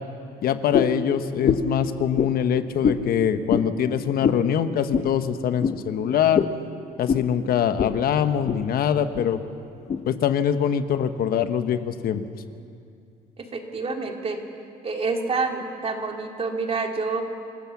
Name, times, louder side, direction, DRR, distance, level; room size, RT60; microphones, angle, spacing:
voice 1, 0.4-6.4 7.0-9.4 10.1-12.2, left 9 dB, 60° left, 10 dB, 1.0 m, -23 dB
sound 1, 0.7-1.0 1.4-1.8 2.1-2.3 2.8-3.0 3.5-3.7 4.2-4.4 4.9-5.1 5.6-5.8 6.3-6.6 7.1-7.3 7.8-7.9 8.3-8.6 9.1-9.3 9.9-10.0, left 7 dB, 40° left, 1.3 m, -23 dB
voice 2, 13.4-14.4 14.8-17.2, right 4 dB, 35° right, 3 dB, 2.6 m, -28 dB
27.0 x 15.5 x 7.1 m, 2.5 s
cardioid pair, 110°, 17 cm